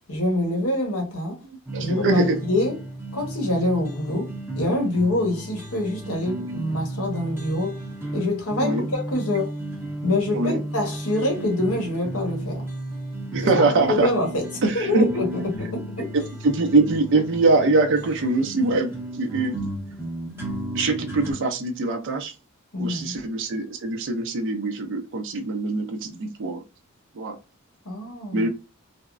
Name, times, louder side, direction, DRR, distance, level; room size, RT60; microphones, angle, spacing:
voice 1, 0.1-1.4 1.8-2.7 3.1-7.8 8.1-9.5 10.0-12.6 13.5-14.5 14.7-16.1 22.7-23.2 27.8-28.5, left 1 dB, 75° left, 1.1 m, -25 dB
sound 1, 1.7-21.3, right 1 dB, 10° right, 0.7 m, -34 dB
voice 2, 1.7-2.4 8.6-8.9 10.3-10.6 13.3-14.1 14.6-15.1 16.1-19.7 20.7-22.3 22.8-26.6 27.1-27.4 28.3-28.5, right 3 dB, 55° right, 0.5 m, -23 dB
3.4 x 2.0 x 2.4 m
head